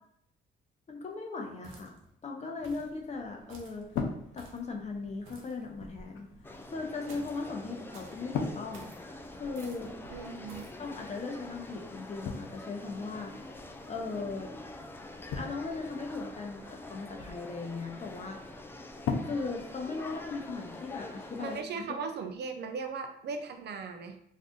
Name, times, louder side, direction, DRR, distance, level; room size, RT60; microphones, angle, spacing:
voice 1, 0.9-2.0 2.2-3.8 4.3-6.3 6.7-8.9 9.3-9.9 10.8-13.3 13.9-14.5 15.3-18.6 19.2-22.0, left 4 dB, 35° left, 2 dB, 0.7 m, -38 dB
sound 1, 1.6-2.1 2.6-2.9 3.5-3.8 4.4-4.7 5.2-5.6 7.1-7.4 7.9-8.2 8.7-9.0 9.6-9.9 10.5-10.8, right 2 dB, 85° right, 0.8 m, -51 dB
sound 2, 2.6-20.6, left 5 dB, 80° left, 0.5 m, -43 dB
sound 3, 6.4-21.6, left 2 dB, 10° left, 0.3 m, -46 dB
voice 2, 10.1-10.7 21.4-24.2, right 5 dB, 60° right, 5 dB, 0.5 m, -38 dB
2.6 x 2.3 x 3.6 m, 0.74 s
cardioid pair, 90°, 20 cm